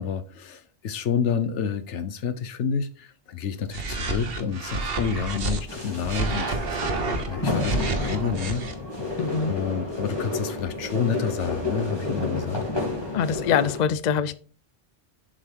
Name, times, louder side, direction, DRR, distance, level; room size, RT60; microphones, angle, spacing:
voice 1, 0.0-6.5 7.2-8.7 9.5-12.6, left 7 dB, 85° left, 1.1 m, -29 dB
sound 1, 3.7-5.6 6.0-8.7, right 3 dB, 55° right, 1.3 m, -29 dB
sound 2, 5.7-13.8, left 2 dB, 20° left, 3.0 m, -30 dB
voice 2, 9.2-9.5 13.1-14.3, left 7 dB, 50° left, 0.5 m, -24 dB
7.4 x 6.4 x 3.6 m
omnidirectional pair, 1.2 m